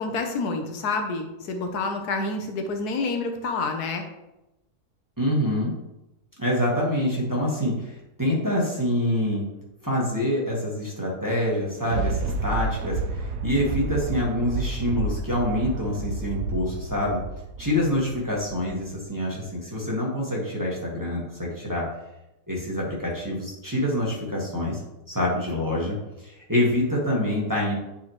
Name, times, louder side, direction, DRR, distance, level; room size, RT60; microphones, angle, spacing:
voice 1, 0.0-4.0, left 3 dB, 75° left, 5 dB, 1.3 m, -28 dB
voice 2, 5.2-5.7 6.4-9.5 9.8-17.2 17.6-21.9 22.5-24.8 25.1-27.8, left 1 dB, 15° right, -5 dB, 1.3 m, -26 dB
Thunder, 11.5-19.0 19.5-19.6, right 3 dB, 80° right, 1.1 m, -30 dB
9.7 x 4.3 x 3.0 m, 0.93 s
omnidirectional pair, 1.7 m